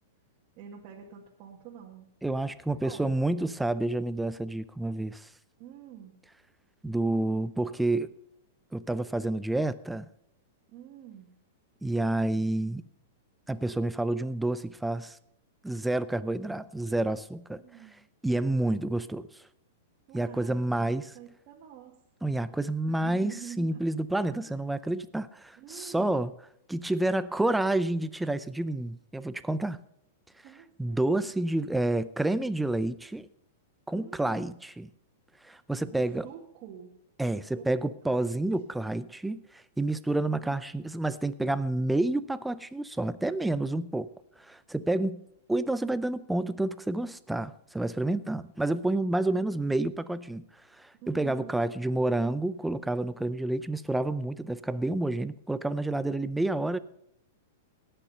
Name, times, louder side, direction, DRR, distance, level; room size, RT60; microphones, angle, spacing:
voice 1, 0.6-2.1 2.7-3.2 5.6-6.1 10.7-11.3 17.6-18.0 20.1-21.9 22.8-23.8 24.5-24.6 25.6-26.2 30.4-31.3 33.9-34.6 35.9-36.9 37.2-37.7 38.1-38.3 40.3-40.6 49.3-49.4 51.0-51.7, right 9 dB, 45° right, 1.8 m, -47 dB
voice 2, 2.2-5.3 6.8-8.1 8.7-10.0 11.8-12.8 13.5-15.2 15.6-17.6 18.2-19.3 20.1-21.1 22.2-26.3 26.7-29.8 30.8-33.3 33.9-34.9 35.4-36.3 37.2-44.1 44.4-45.2 45.5-50.4 50.8-56.8, right 2 dB, 5° right, 0.5 m, -29 dB
18.0 x 6.8 x 5.6 m
hypercardioid pair, 125°, 0 cm